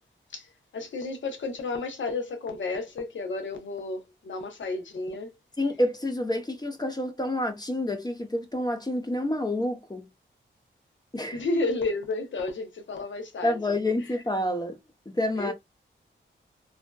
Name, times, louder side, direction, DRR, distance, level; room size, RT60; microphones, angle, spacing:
voice 1, 0.3-5.3 11.3-13.6 14.0-14.1 15.4-15.5, left 3 dB, 70° left, 0.8 m, -32 dB
voice 2, 5.6-10.1 11.1-11.4 13.4-14.8 15.1-15.5, left 1 dB, 20° left, 0.7 m, -28 dB
2.6 x 2.1 x 2.2 m
cardioid pair, 50°, 20 cm